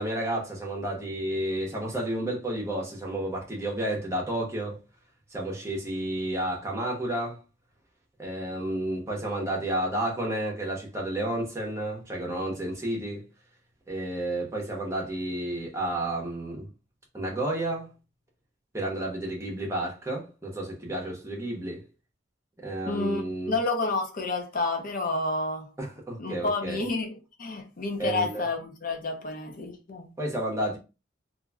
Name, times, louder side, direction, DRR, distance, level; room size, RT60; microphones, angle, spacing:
voice 1, 0.0-4.8 5.3-7.4 8.2-13.2 13.9-16.7 17.1-17.9 18.7-21.9 22.6-23.5 25.8-26.8 28.0-28.4 30.2-30.8, right 1 dB, 15° right, 0.9 m, -31 dB
voice 2, 22.9-23.2 23.5-25.7 26.2-30.1, left 3 dB, 45° left, 0.6 m, -30 dB
2.9 x 2.5 x 2.3 m
head